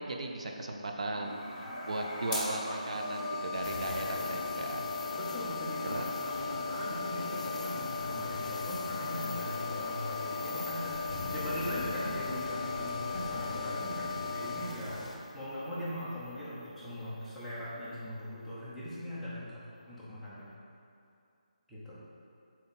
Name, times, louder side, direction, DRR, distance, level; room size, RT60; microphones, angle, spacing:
voice 1, 0.0-4.8 5.9-6.1, right 2 dB, 50° right, 2 dB, 0.5 m, -37 dB
sound 1, 1.1-14.6, left 4 dB, 20° left, 1.2 m, -37 dB
sound 2, 3.5-15.2, left 2 dB, 50° left, 0.9 m, -45 dB
sound 3, 3.6-16.7 17.0-17.1 19.6-20.0, left 3 dB, 65° left, 0.5 m, -45 dB
voice 2, 5.1-20.5 21.7-22.0, equal, ahead, -14 dB, 0.5 m, -40 dB
5.8 x 4.3 x 4.0 m, 2.5 s
hypercardioid pair, 175°, 4 cm